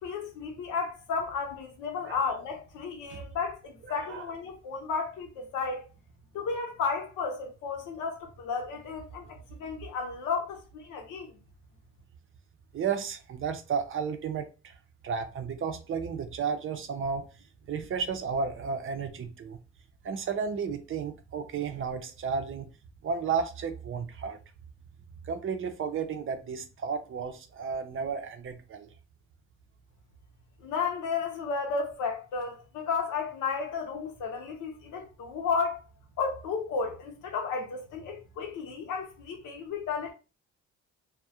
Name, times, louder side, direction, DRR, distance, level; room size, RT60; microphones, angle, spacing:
voice 1, 0.0-5.9 6.3-11.4 30.6-35.8 36.2-40.1, left 5 dB, 85° left, 0.8 m, -33 dB
voice 2, 3.9-4.3 12.7-14.8 15.0-17.2 17.7-19.6 20.0-22.7 23.0-24.4 25.2-28.9, right 6 dB, 45° right, 0.5 m, -33 dB
2.3 x 2.1 x 2.8 m
cardioid pair, 90°, 30 cm